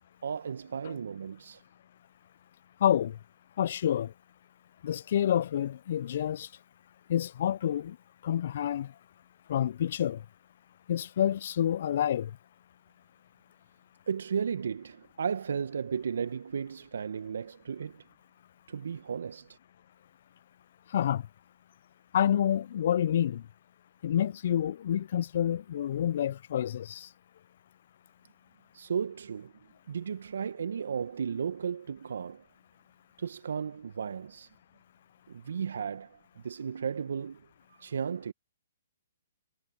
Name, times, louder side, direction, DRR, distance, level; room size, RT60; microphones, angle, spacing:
voice 1, 0.2-1.6 14.1-18.0 18.7-19.6 28.7-29.5 29.9-32.4 33.2-34.5 35.3-37.4 37.7-38.3, right 7 dB, 70° right, 1.3 m, -34 dB
voice 2, 2.8-3.2 3.6-4.1 4.8-6.5 7.1-8.0 8.2-8.9 9.5-10.2 10.9-12.3 20.9-21.2 22.1-23.4 24.0-27.1, left 10 dB, 55° left, 0.6 m, -28 dB
figure-of-eight pair, 130°, 0 cm